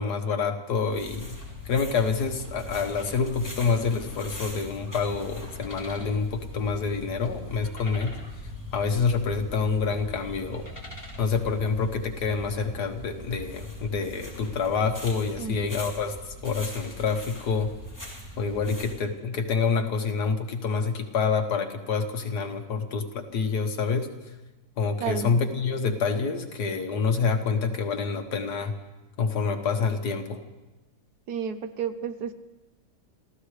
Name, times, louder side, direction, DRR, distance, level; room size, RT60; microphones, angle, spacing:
voice 1, 0.0-1.4 1.6-8.2 8.7-10.7 11.2-16.2 16.4-17.7 18.4-24.1 24.8-28.7 29.2-30.4, left 5 dB, 75° left, 5 dB, 1.8 m, -27 dB
sound 1, 0.9-19.0, left 1 dB, 10° left, 3.1 m, -40 dB
voice 2, 25.0-25.3 31.3-32.3, right 6 dB, 70° right, 10 dB, 1.3 m, -31 dB
29.0 x 15.0 x 3.3 m, 1.1 s
omnidirectional pair, 1.8 m